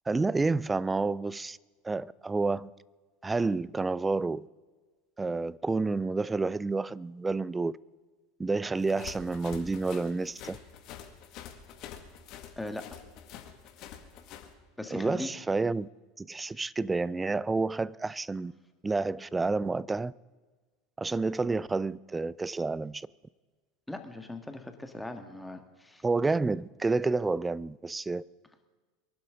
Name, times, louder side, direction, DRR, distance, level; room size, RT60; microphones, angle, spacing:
voice 1, 0.1-1.6 1.8-2.7 3.2-4.5 5.2-7.7 8.4-10.6 14.9-15.9 16.2-18.5 18.8-20.1 21.0-23.1 26.0-28.2, right 3 dB, 15° right, 0.4 m, -29 dB
sound 1, 8.8-14.5, left 9 dB, 50° left, 1.8 m, -46 dB
voice 2, 14.8-15.3 16.4-16.5 23.9-26.0, left 2 dB, 5° left, 1.7 m, -39 dB
23.5 x 11.5 x 3.8 m
hypercardioid pair, 80°, 0 cm